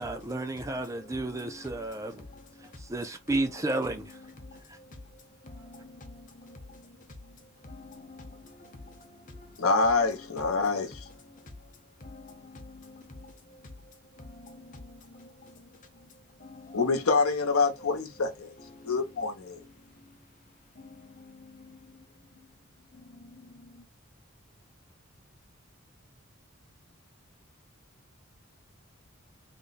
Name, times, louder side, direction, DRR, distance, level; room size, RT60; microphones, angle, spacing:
voice 1, 0.0-2.3 2.8-4.2 4.7-4.8, right 2 dB, 15° right, 0.4 m, -32 dB
voice 2, 0.6-1.7 2.0-2.7 4.4-4.9 5.4-7.0 7.6-9.6 11.3-11.4 12.0-13.3 14.2-15.7 16.4-16.9 18.7-19.0 20.8-22.0 22.9-23.8, left 2 dB, 35° left, 0.8 m, -48 dB
voice 3, 9.6-11.0 16.7-18.5 18.8-19.6, left 4 dB, 90° left, 0.9 m, -26 dB
3.4 x 2.1 x 4.0 m
head